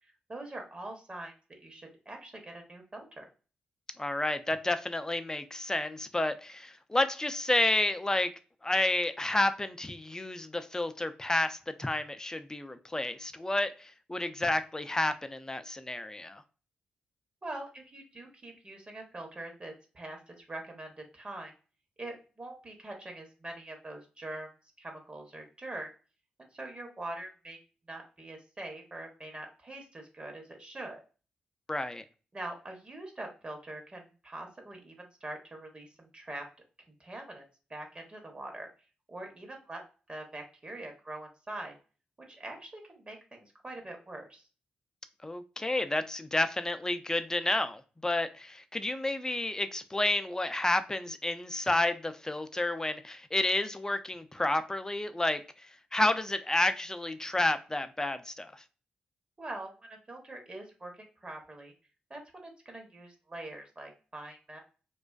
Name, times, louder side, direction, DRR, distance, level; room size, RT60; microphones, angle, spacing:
voice 1, 0.3-1.3 1.6-3.2 17.4-21.5 22.0-24.5 24.8-25.9 26.5-27.6 27.9-31.0 32.3-36.4 37.0-37.4 37.7-38.7 39.1-39.8 40.1-41.7 42.3-44.4 59.4-60.9 61.2-61.7 62.1-64.6, right 2 dB, 35° right, 0.8 m, -43 dB
voice 2, 4.0-8.3 8.6-16.4 31.7-32.0 45.2-58.5, left 2 dB, 20° left, 0.4 m, -30 dB
2.4 x 2.2 x 2.3 m
supercardioid pair, 45°, 3 cm